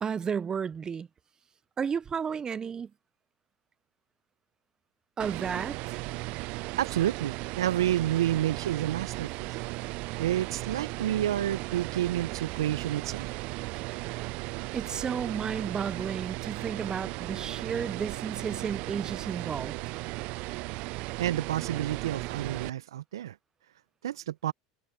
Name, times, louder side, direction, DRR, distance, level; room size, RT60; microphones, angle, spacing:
voice 1, 0.0-1.1 1.8-2.9 5.2-6.0 13.8-14.1 14.7-19.7, right 6 dB, 30° right, 1.0 m, -33 dB
sound 1, 5.2-22.7, right 24 dB, 60° right, 0.8 m, -36 dB
voice 2, 6.8-9.5 10.2-13.3 21.2-23.4 24.0-24.5, right 12 dB, 80° right, 1.2 m, -29 dB
hypercardioid pair, 75°, 2 cm